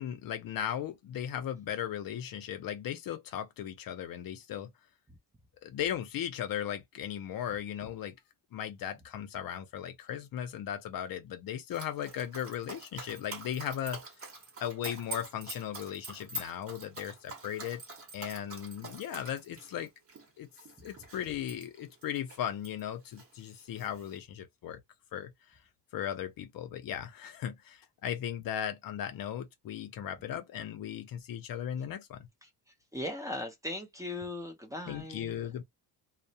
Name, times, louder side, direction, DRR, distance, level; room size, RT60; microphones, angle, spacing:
voice 1, 0.0-4.7 5.6-8.2 8.5-14.0 14.6-17.8 18.1-19.9 20.4-20.5 20.8-24.8 25.1-25.3 25.9-32.3 34.9-35.6, left 10 dB, 65° left, 0.6 m, -37 dB
Dog, 11.7-22.8 23.1-24.2, right 2 dB, 40° right, 0.9 m, -45 dB
voice 2, 32.9-35.3, left 1 dB, 10° right, 0.5 m, -38 dB
2.3 x 2.1 x 2.7 m
cardioid pair, 125°, 37 cm